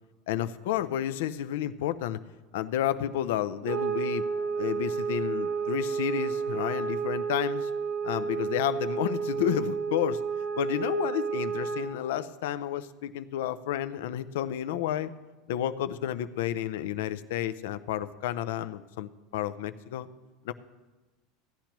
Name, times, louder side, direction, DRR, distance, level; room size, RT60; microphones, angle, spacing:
voice 1, 0.3-2.2 2.5-4.3 4.6-7.7 8.0-10.2 10.6-15.1 15.5-20.1 20.4-20.5, left 11 dB, 80° left, 13 dB, 0.5 m, -31 dB
sound 1, 3.6-12.0, right 5 dB, 85° right, 3.4 m, -31 dB
16.5 x 10.5 x 3.0 m, 1.1 s
supercardioid pair, 120°, 0 cm